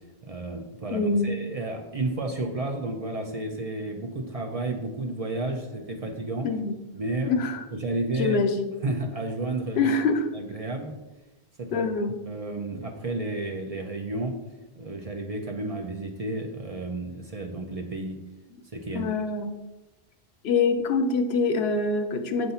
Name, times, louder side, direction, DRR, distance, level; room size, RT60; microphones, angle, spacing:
voice 1, 0.2-6.5 6.9-8.4 8.8-9.9 10.3-10.9 11.6-11.9 12.3-14.3 14.8-18.2 18.7-19.1, right 2 dB, 40° right, 2 dB, 0.6 m, -32 dB
voice 2, 0.9-1.3 6.4-6.8 7.3-7.6 8.2-8.7 9.8-10.3 11.7-12.2 18.9-19.6 20.4-22.5, left 4 dB, 80° left, 8 dB, 0.9 m, -25 dB
7.8 x 2.6 x 5.5 m, 1.1 s
omnidirectional pair, 1.1 m